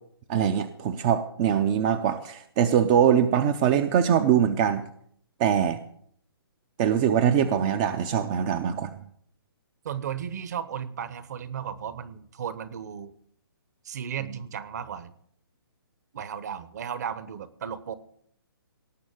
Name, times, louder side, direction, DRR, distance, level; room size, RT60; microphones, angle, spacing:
voice 1, 0.3-4.8 5.4-5.8 6.8-8.9, right 9 dB, 20° right, 12 dB, 0.5 m, -23 dB
voice 2, 9.8-13.1 13.8-15.1 16.1-18.0, right 8 dB, 45° right, 15 dB, 1.2 m, -35 dB
18.0 x 6.4 x 9.0 m, 0.64 s
hypercardioid pair, 165°, 13 cm